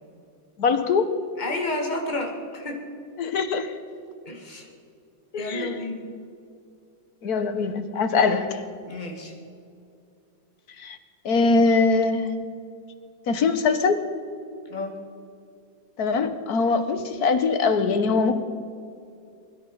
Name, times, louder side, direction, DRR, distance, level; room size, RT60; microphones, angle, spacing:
voice 1, 0.6-1.1 3.2-3.7 5.3-5.8 7.2-8.6 10.8-11.0 11.2-12.4 13.3-14.1 16.0-18.4, left 4 dB, 60° left, 9 dB, 1.4 m, -22 dB
voice 2, 1.4-2.8 4.3-4.7 5.4-6.1 8.8-9.3 14.7-15.0, left 2 dB, 25° left, 1 dB, 2.2 m, -31 dB
21.5 x 12.0 x 5.4 m, 2.5 s
omnidirectional pair, 2.0 m